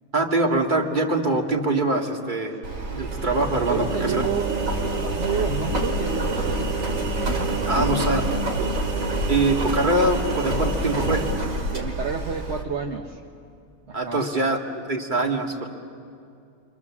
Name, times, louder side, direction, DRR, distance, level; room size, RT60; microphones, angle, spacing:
voice 1, 0.1-2.6 2.9-4.2 7.7-8.2 9.3-11.3 13.9-14.6 14.9-15.7, right 2 dB, 35° right, 2 dB, 2.1 m, -23 dB
Engine, 2.6-12.6, right 2 dB, 75° right, 2.4 m, -26 dB
voice 2, 3.7-4.5 5.0-6.9 7.5-7.9 11.7-13.2 13.9-14.3, right 6 dB, 55° right, 3 dB, 1.4 m, -30 dB
29.0 x 24.5 x 7.3 m, 2.4 s
omnidirectional pair, 1.4 m